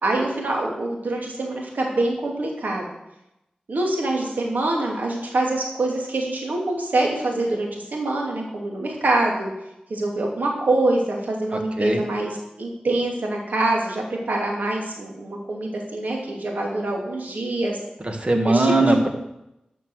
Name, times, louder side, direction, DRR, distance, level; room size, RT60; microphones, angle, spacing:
voice 1, 0.0-2.8 3.7-9.5 9.9-17.8 18.5-19.1, right 2 dB, 85° right, 0 dB, 2.8 m, -25 dB
voice 2, 18.0-19.1, right 2 dB, 40° right, 4 dB, 2.1 m, -19 dB
13.5 x 6.0 x 6.4 m, 0.88 s
cardioid pair, 45°, 3 cm